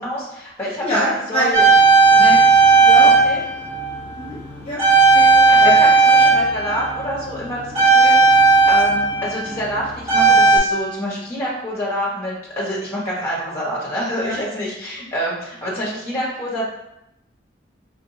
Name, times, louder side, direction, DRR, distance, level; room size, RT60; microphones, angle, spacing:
voice 1, 0.0-1.6 2.2-2.5 3.0-3.4 5.5-16.7, equal, 10° left, -6 dB, 1.2 m, -27 dB
voice 2, 0.8-1.6 2.1-2.2 2.8-3.1 4.1-4.8 5.1-5.8 14.2-14.4, equal, 30° left, -8 dB, 0.9 m, -24 dB
sound 1, 1.5-4.5 4.8-10.6, right 4 dB, 35° right, 1.4 m, -14 dB
4.9 x 2.6 x 2.7 m, 0.84 s
head